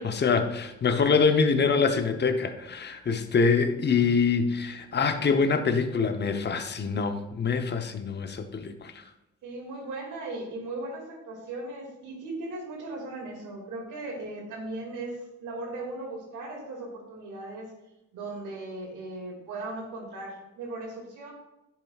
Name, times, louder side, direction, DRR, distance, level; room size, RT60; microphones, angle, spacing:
voice 1, 0.0-8.9, left 5 dB, 35° left, 8 dB, 0.8 m, -25 dB
voice 2, 9.4-17.7 18.1-21.3, right 2 dB, 85° right, 0 dB, 2.3 m, -37 dB
10.0 x 7.5 x 2.4 m, 0.95 s
cardioid pair, 90°, 30 cm